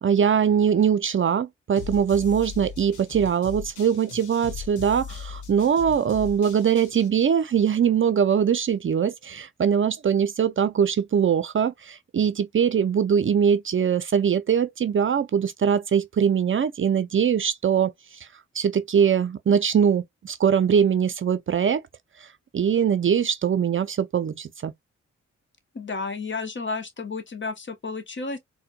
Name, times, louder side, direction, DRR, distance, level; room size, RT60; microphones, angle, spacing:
voice 1, 0.0-17.9 18.5-21.8 22.5-24.7, right 7 dB, 45° right, 0.5 m, -22 dB
sound 1, 1.8-7.1, left 7 dB, 80° left, 1.0 m, -39 dB
voice 2, 25.7-28.4, left 4 dB, 40° left, 1.0 m, -32 dB
4.3 x 2.2 x 2.2 m
supercardioid pair, 45°, 30 cm